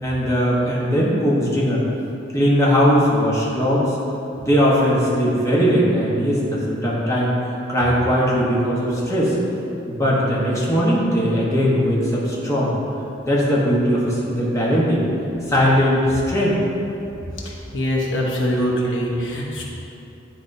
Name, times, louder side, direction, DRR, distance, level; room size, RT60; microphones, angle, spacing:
voice 1, 0.0-1.8 2.3-4.0 4.4-7.3 7.7-9.3 9.9-12.7 13.2-15.0 15.5-16.6, equal, 15° left, -7 dB, 1.1 m, -19 dB
voice 2, 17.7-19.6, equal, 85° left, -2 dB, 1.0 m, -22 dB
9.7 x 4.6 x 2.7 m, 2.8 s
head